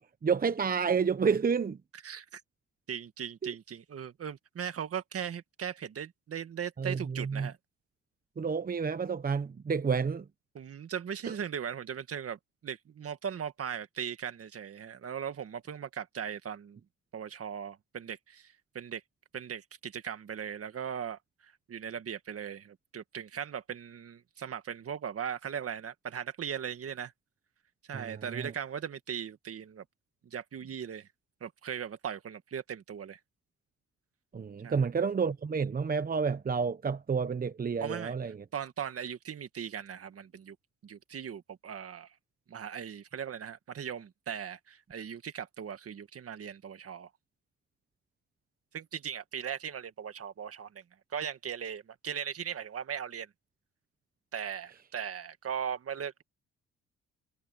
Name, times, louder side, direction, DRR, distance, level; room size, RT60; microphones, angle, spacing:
voice 1, 0.2-1.8 3.4-3.5 6.8-7.5 8.4-10.2 11.3-11.4 27.9-28.5 34.3-38.4, right 5 dB, 30° right, 0.9 m, -30 dB
voice 2, 2.0-2.4 2.9-7.6 10.5-16.8 17.1-19.0 19.3-27.1 27.9-29.8 30.2-31.1 31.4-33.2 34.6-34.9 37.8-40.6 40.8-42.1 42.5-47.1 48.7-50.8 51.1-53.3 54.3-56.2, right 8 dB, 50° right, 1.7 m, -39 dB
cardioid pair, 90°, 30 cm